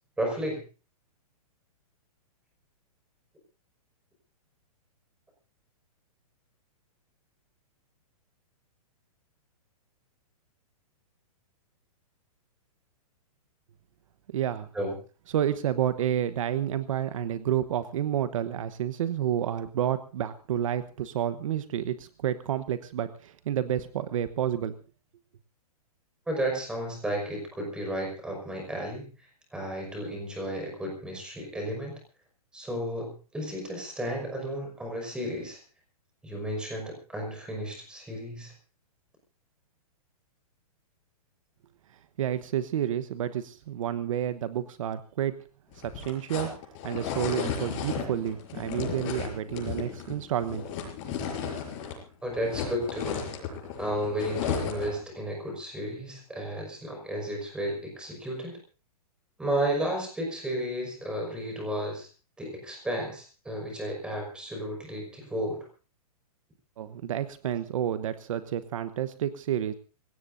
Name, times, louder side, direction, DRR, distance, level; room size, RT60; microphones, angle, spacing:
voice 1, 0.2-0.6 14.7-14.9 26.3-32.0 32.5-35.6 36.2-38.5 52.2-53.2 53.8-58.6 59.4-62.1 62.4-65.7, right 1 dB, 5° right, 1 dB, 5.4 m, -33 dB
voice 2, 14.3-14.7 15.3-24.8 42.2-45.4 45.8-46.5 46.8-50.6 66.8-69.7, right 10 dB, 60° right, 12 dB, 1.0 m, -30 dB
sound 1, 45.7-52.0 52.3-55.0, left 7 dB, 30° left, 6.4 m, -34 dB
27.0 x 17.0 x 2.7 m, 0.35 s
hypercardioid pair, 160°, 19 cm